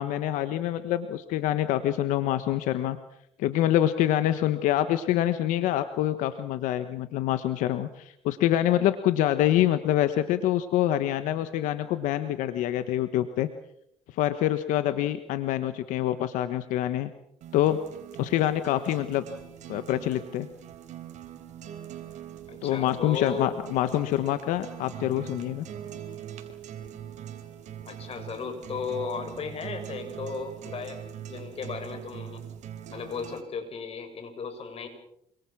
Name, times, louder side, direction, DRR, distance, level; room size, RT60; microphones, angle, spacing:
voice 1, 0.0-3.0 3.4-13.5 14.1-17.1 17.5-17.8 18.2-19.2 19.7-20.5 22.6-25.6, left 12 dB, 90° left, 10 dB, 1.3 m, -26 dB
sound 1, 17.4-33.4, right 10 dB, 70° right, 4.3 m, -42 dB
voice 2, 22.5-23.5 27.9-31.0 31.2-32.4 32.9-34.9, left 5 dB, 50° left, 7 dB, 7.3 m, -35 dB
27.5 x 25.5 x 6.1 m, 0.75 s
cardioid pair, 95°, 13 cm